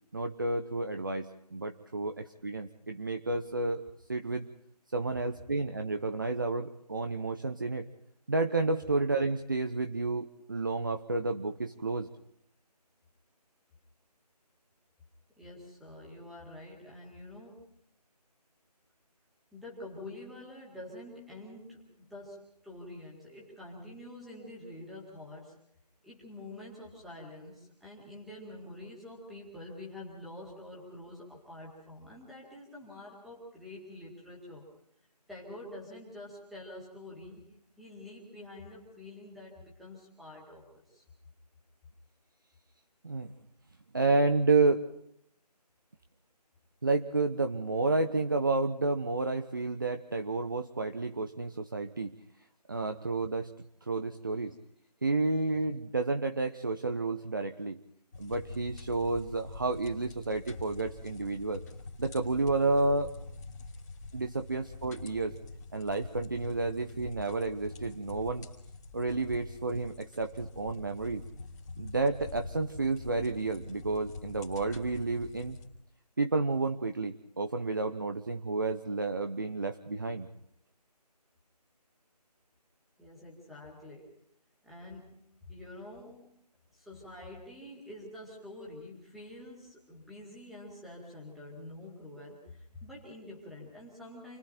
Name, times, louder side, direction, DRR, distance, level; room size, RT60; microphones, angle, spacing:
voice 1, 0.1-3.8 4.1-4.5 4.9-7.9 8.3-12.1 43.0-43.3 43.9-44.8 46.8-52.1 52.7-53.5 53.9-54.5 55.0-57.8 58.2-61.6 62.0-63.1 64.1-65.3 65.7-68.5 68.9-71.2 71.8-75.6 76.2-80.3, right 3 dB, 30° right, 6 dB, 0.8 m, -30 dB
voice 2, 15.4-17.6 19.5-25.6 26.0-34.7 35.3-37.5 37.8-41.0 83.0-84.1 84.6-86.2 86.7-94.4, left 1 dB, ahead, -5 dB, 2.1 m, -47 dB
sound 1, 58.1-75.7, left 2 dB, 25° left, 2.7 m, -45 dB
29.0 x 21.5 x 4.4 m, 0.72 s
figure-of-eight pair, 165°, 21 cm